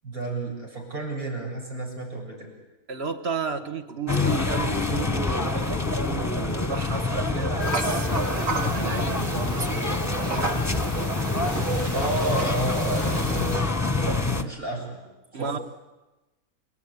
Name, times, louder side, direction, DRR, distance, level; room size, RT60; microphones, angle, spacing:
voice 1, 0.0-2.5 11.5-11.6 11.9-15.0 15.3-15.5, right 2 dB, 85° right, -1 dB, 8.3 m, -32 dB
voice 2, 2.9-10.1 15.3-15.6, right 4 dB, 45° right, 7 dB, 1.7 m, -33 dB
sound 1, 4.1-14.4, left 2 dB, 15° left, 1.1 m, -26 dB
sound 2, 7.6-13.6, right 2 dB, 65° right, 3.0 m, -33 dB
30.0 x 18.5 x 9.9 m, 1.1 s
omnidirectional pair, 1.5 m